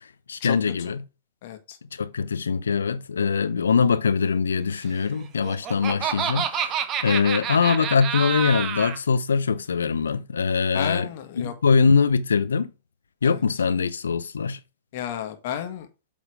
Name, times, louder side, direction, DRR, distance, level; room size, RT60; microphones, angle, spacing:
voice 1, 0.3-1.0 1.9-11.1 11.4-12.7 13.2-14.6, left 5 dB, 75° left, 0.6 m, -23 dB
voice 2, 1.4-1.8 10.7-11.5 13.2-13.4 14.9-15.9, left 10 dB, 55° left, 1.5 m, -32 dB
Laughter, 5.2-9.0, right 8 dB, 30° right, 0.8 m, -28 dB
8.3 x 3.6 x 4.9 m
figure-of-eight pair, 105°, 0 cm